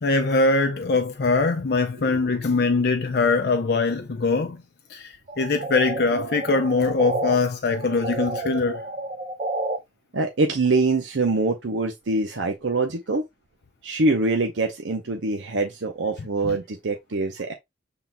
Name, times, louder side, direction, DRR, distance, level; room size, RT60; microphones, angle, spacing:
voice 1, 0.0-4.6 4.9-8.8 16.4-16.6, left 3 dB, 60° left, 0.5 m, -22 dB
sound 1, 5.3-7.3 7.7-9.8, right 2 dB, 40° right, 0.7 m, -30 dB
voice 2, 10.1-13.2 13.8-17.5, right 3 dB, 90° right, 0.7 m, -24 dB
5.7 x 3.7 x 2.2 m
head